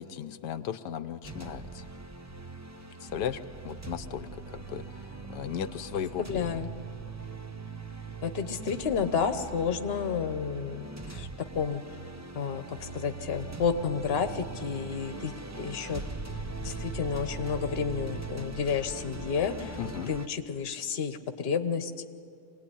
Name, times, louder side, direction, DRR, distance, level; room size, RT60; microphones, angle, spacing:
voice 1, 0.0-1.8 3.0-6.6 19.8-20.1, left 9 dB, 85° left, 9 dB, 1.4 m, -36 dB
sound 1, 1.2-20.3, right 3 dB, 25° right, 0.3 m, -41 dB
voice 2, 6.2-6.7 8.2-11.3 11.5-11.8 12.3-16.0 16.6-19.8 20.1-22.0, left 6 dB, 40° left, 9 dB, 1.2 m, -31 dB
24.0 x 18.0 x 9.9 m, 2.4 s
omnidirectional pair, 1.8 m